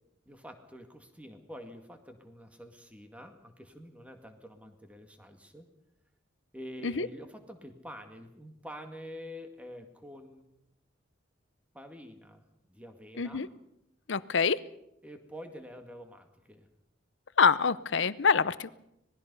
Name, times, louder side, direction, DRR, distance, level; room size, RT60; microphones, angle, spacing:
voice 1, 0.3-5.7 6.5-10.4 11.7-13.5 15.0-16.7, equal, 5° right, 6 dB, 2.1 m, -47 dB
voice 2, 13.2-13.5 14.1-14.6 17.4-18.7, left 5 dB, 70° left, 16 dB, 0.7 m, -25 dB
26.0 x 20.0 x 5.5 m, 0.81 s
head